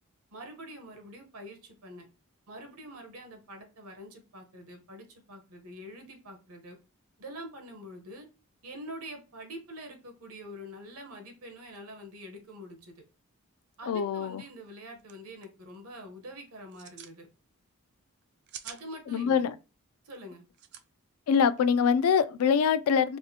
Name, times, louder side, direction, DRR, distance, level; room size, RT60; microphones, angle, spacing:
voice 1, 0.3-2.1 2.5-6.8 7.2-8.3 8.6-13.0 13.8-17.3 18.6-19.4 20.0-20.4, equal, 80° right, 0.9 m, -45 dB
voice 2, 13.9-14.4 19.1-19.6 21.3-23.2, left 7 dB, 80° left, 0.3 m, -24 dB
sound 1, 14.7-14.8 15.0-15.1 15.4-15.8 16.6-17.2 18.2-18.8 20.5-20.8, right 9 dB, 50° right, 0.3 m, -45 dB
4.7 x 2.4 x 2.7 m
head